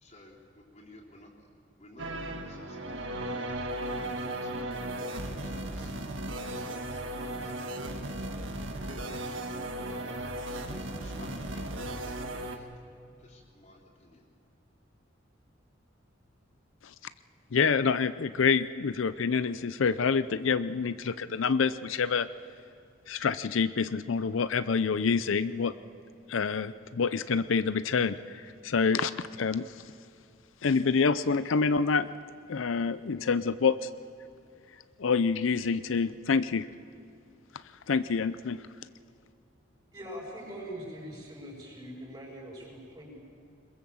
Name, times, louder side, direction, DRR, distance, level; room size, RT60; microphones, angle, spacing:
voice 1, 0.0-1.3 1.8-5.9 6.8-8.0 9.2-10.3 10.7-12.6 13.2-14.2, left 1 dB, 35° left, -4 dB, 3.5 m, -55 dB
sound 1, 2.0-12.6, right 1 dB, 75° right, 1.7 m, -36 dB
voice 2, 17.5-22.3 23.1-25.7 26.3-29.1 29.4-29.7 30.6-32.1 32.5-33.9 35.0-36.7 37.9-38.6, left 5 dB, 80° left, 14 dB, 0.5 m, -27 dB
voice 3, 39.9-43.2, equal, 25° right, -1 dB, 6.4 m, -42 dB
22.0 x 21.5 x 7.2 m, 2.5 s
head